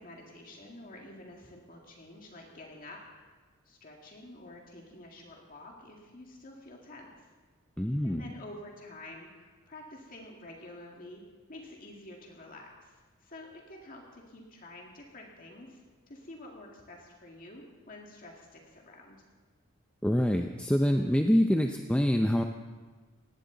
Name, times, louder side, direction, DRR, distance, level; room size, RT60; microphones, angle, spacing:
voice 1, 0.0-3.0 3.7-7.3 8.0-11.2 11.5-19.2, left 1 dB, 40° left, 0 dB, 2.1 m, -49 dB
voice 2, 7.8-8.3 20.0-22.4, equal, 5° left, 4 dB, 0.5 m, -25 dB
19.0 x 16.0 x 4.0 m, 1.4 s
head